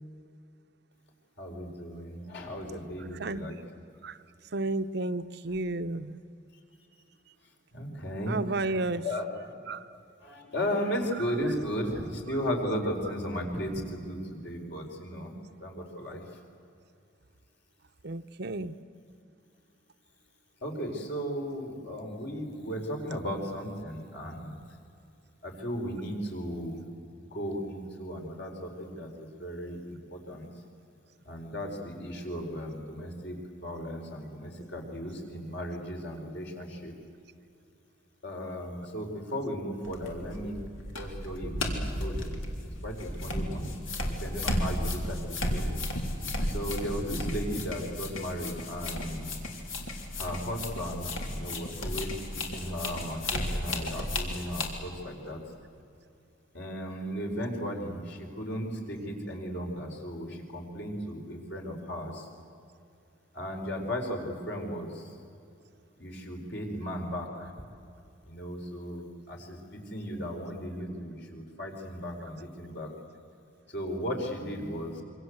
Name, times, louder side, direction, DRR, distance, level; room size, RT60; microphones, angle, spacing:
voice 1, 1.4-3.6 7.7-8.4 8.8-9.7 10.2-15.3 15.6-16.2 20.6-24.6 25.4-26.8 27.3-30.5 31.2-36.9 38.2-40.6 41.0-42.4 42.8-43.7 44.2-45.2 45.5-45.7 46.5-49.3 50.2-55.4 56.5-62.3 63.3-65.1 66.0-67.6 68.2-72.9 73.7-75.0, equal, 60° left, 2 dB, 4.8 m, -36 dB
voice 2, 4.5-6.2 8.3-9.0 9.7-9.9 18.0-18.7, right 2 dB, 55° right, 10 dB, 0.8 m, -32 dB
sound 1, 39.8-54.7, left 1 dB, 85° left, 3.5 m, -34 dB
27.0 x 24.5 x 8.1 m, 2.5 s
head